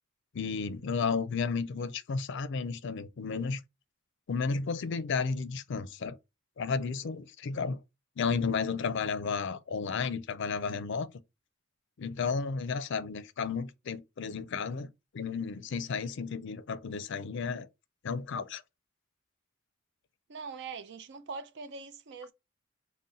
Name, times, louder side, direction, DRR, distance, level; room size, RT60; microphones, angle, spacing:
voice 1, 0.3-3.6 4.3-6.2 6.6-7.8 8.2-11.1 12.0-14.9 15.1-17.7 18.0-18.6, left 5 dB, 60° left, 0.4 m, -33 dB
voice 2, 20.3-22.3, right 4 dB, 60° right, 0.5 m, -42 dB
3.8 x 2.1 x 3.9 m
head